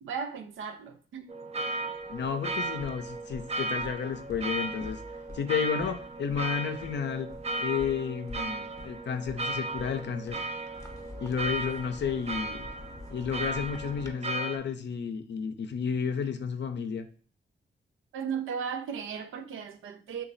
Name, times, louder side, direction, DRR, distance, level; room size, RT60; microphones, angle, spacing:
voice 1, 0.0-1.3 18.1-20.2, right 7 dB, 80° right, 0.5 m, -36 dB
sound 1, 1.3-14.6, right 2 dB, 30° right, 0.5 m, -36 dB
sound 2, 1.9-14.1, left 1 dB, 15° left, 0.7 m, -48 dB
voice 2, 2.1-5.0 5.3-7.3 7.6-10.4 11.2-12.7 13.1-17.1, left 7 dB, 60° left, 0.5 m, -32 dB
3.0 x 2.3 x 3.8 m
supercardioid pair, 45°, 20 cm